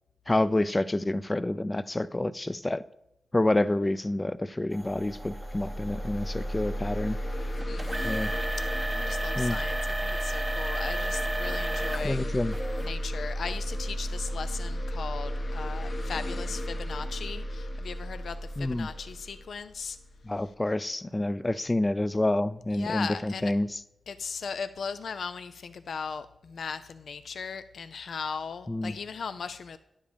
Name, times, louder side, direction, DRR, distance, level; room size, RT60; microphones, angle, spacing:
voice 1, 0.3-2.8 3.3-7.2 8.0-8.3 9.4-9.6 12.0-12.5 18.6-18.9 20.3-23.7 28.7-29.0, left 1 dB, 20° left, 0.5 m, -28 dB
sound 1, 4.7-12.1 12.5-12.9 13.5-13.6 14.3-14.4, right 1 dB, 15° right, 0.7 m, -35 dB
sound 2, 4.8-20.3, equal, 50° left, 1.1 m, -33 dB
voice 2, 8.9-12.2 12.8-20.0 20.4-20.5 22.7-23.5 24.1-29.8, left 5 dB, 80° left, 0.5 m, -38 dB
10.5 x 7.4 x 5.1 m
wide cardioid pair, 85°, 0 cm